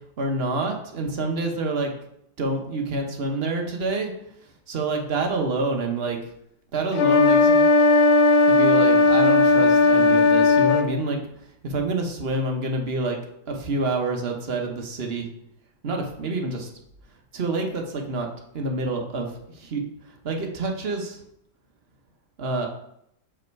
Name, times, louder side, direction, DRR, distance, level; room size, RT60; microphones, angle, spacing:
voice 1, 0.2-1.9 2.4-4.1 4.7-6.2 6.7-7.7 8.5-11.2 11.6-13.2 13.5-15.3 15.8-16.7 17.3-18.3 18.5-21.2 22.4-22.7, right 2 dB, 40° right, 2 dB, 1.0 m, -27 dB
sound 1, 6.9-10.9, left 3 dB, 70° left, 1.0 m, -16 dB
6.2 x 5.5 x 4.6 m, 0.76 s
omnidirectional pair, 2.0 m